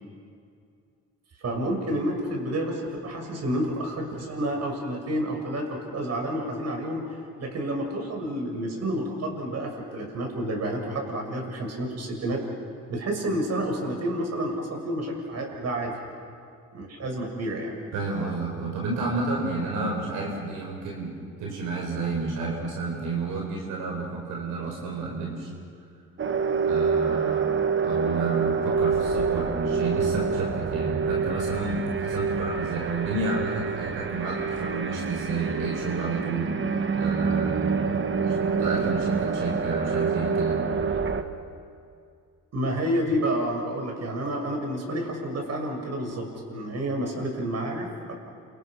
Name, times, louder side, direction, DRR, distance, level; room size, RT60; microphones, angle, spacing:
voice 1, 1.4-12.4 12.9-15.9 16.7-17.7 42.5-48.1, right 1 dB, 60° right, 2 dB, 6.6 m, -29 dB
voice 2, 17.9-21.1 21.4-25.5 26.6-27.5 27.8-40.6, right 3 dB, 90° right, -1 dB, 5.1 m, -31 dB
sound 1, 26.2-41.2, right 5 dB, 40° right, 1.7 m, -27 dB
30.0 x 28.0 x 6.1 m, 2.3 s
cardioid pair, 90°, 30 cm